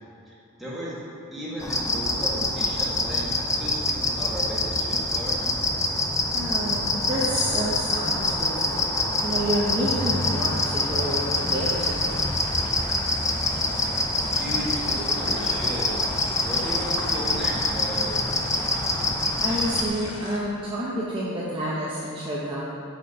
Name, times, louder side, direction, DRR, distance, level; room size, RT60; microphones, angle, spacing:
voice 1, 0.3-1.0 1.3-5.6 14.4-15.9 16.4-18.2, equal, ahead, -8 dB, 1.6 m, -35 dB
sound 1, 1.6-19.9, left 2 dB, 15° left, 0.4 m, -25 dB
voice 2, 6.3-8.8 9.2-12.3 19.4-22.6, equal, 25° right, -7 dB, 0.7 m, -29 dB
sound 2, 7.8-20.4, left 2 dB, 90° left, 1.0 m, -43 dB
7.2 x 4.3 x 5.2 m, 2.6 s
head